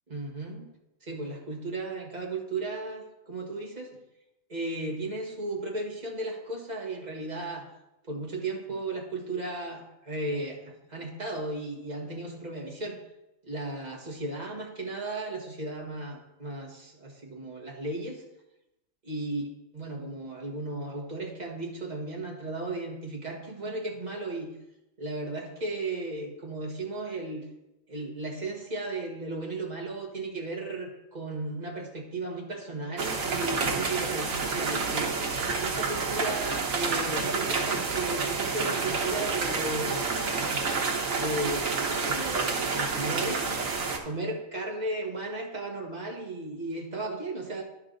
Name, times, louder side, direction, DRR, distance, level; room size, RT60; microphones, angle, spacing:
voice 1, 0.1-0.7 1.0-3.9 4.5-7.7 8.1-13.0 13.4-18.2 19.0-19.5 19.7-24.5 25.0-27.5 27.9-35.1 35.6-40.1 41.1-47.6, right 2 dB, 35° right, 0 dB, 1.5 m, -35 dB
sound 1, 33.0-44.0, right 4 dB, 85° right, 1.4 m, -29 dB
10.5 x 6.2 x 3.9 m, 0.90 s
omnidirectional pair, 1.4 m